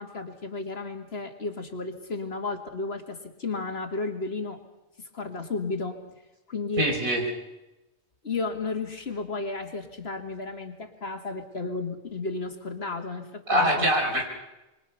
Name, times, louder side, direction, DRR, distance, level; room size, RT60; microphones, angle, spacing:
voice 1, 0.0-4.6 5.0-6.0 6.5-6.9 8.2-13.9, left 3 dB, 50° left, 5 dB, 2.2 m, -33 dB
voice 2, 6.8-7.2 13.5-14.3, equal, 80° right, 1 dB, 5.1 m, -23 dB
26.5 x 23.0 x 5.7 m, 1.0 s
omnidirectional pair, 1.4 m